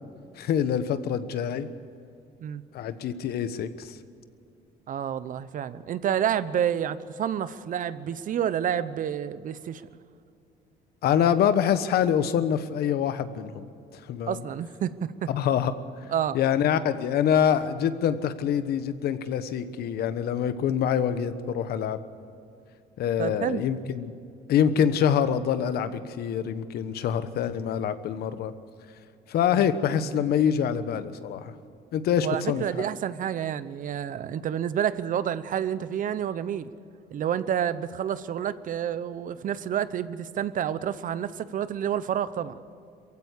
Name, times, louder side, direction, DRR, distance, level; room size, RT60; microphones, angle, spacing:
voice 1, 0.4-1.7 2.7-4.0 11.0-13.7 13.9-14.4 15.3-15.7 16.3-22.0 23.0-24.1 24.5-28.5 29.3-31.5 31.9-32.9, left 8 dB, 70° left, 12 dB, 1.2 m, -25 dB
voice 2, 4.9-9.8 14.3-15.3 16.1-16.4 23.2-23.6 29.5-29.7 32.2-36.7 37.1-42.6, right 9 dB, 50° right, 14 dB, 0.9 m, -29 dB
22.5 x 15.5 x 8.4 m, 2.4 s
cardioid pair, 110°, 17 cm